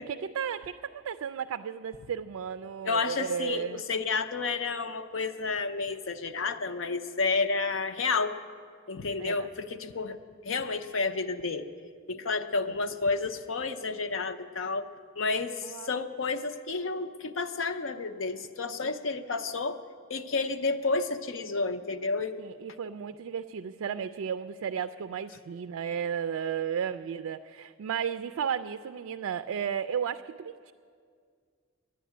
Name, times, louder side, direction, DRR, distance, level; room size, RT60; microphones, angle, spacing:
voice 1, 0.0-3.8 9.2-9.5 15.6-16.0 18.8-18.9 22.4-30.7, right 7 dB, 90° right, 11 dB, 0.3 m, -34 dB
voice 2, 2.8-8.3 8.9-10.2 10.4-11.7 12.1-14.9 15.2-19.8 20.1-22.4, left 4 dB, 70° left, 9 dB, 0.7 m, -30 dB
12.0 x 9.9 x 9.2 m, 2.1 s
head